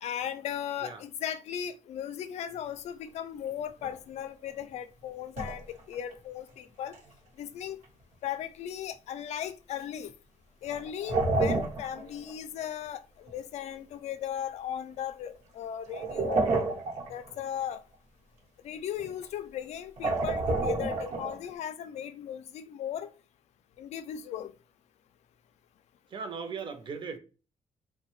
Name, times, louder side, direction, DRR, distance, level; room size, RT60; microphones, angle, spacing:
voice 1, 0.0-6.9 7.4-7.8 8.2-10.1 10.6-16.4 17.1-17.8 18.6-23.1 23.8-24.5, left 10 dB, 70° left, 0.4 m, -37 dB
sound 1, 3.8-4.0 5.4-6.1 6.8-7.0 10.7-12.3 12.6-12.7 13.3-13.4 15.9-17.4 19.0-19.2 20.0-21.5, right 3 dB, 80° right, 0.9 m, -29 dB
voice 2, 26.1-27.2, right 5 dB, 45° right, 0.6 m, -38 dB
2.7 x 2.1 x 3.0 m
cardioid pair, 115°, 12 cm